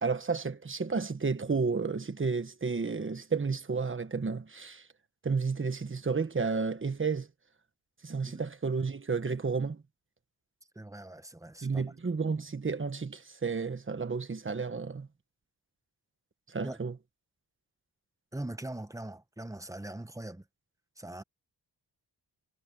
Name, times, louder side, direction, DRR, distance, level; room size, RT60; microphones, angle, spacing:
voice 1, 0.0-4.9 5.2-7.3 8.0-9.8 11.6-15.1 16.5-17.0, right 4 dB, 30° right, 1.3 m, -32 dB
voice 2, 10.8-11.9 16.6-16.8 18.3-20.4 21.0-21.2, right 1 dB, 10° right, 0.8 m, -41 dB
wide cardioid pair, 175°, 43 cm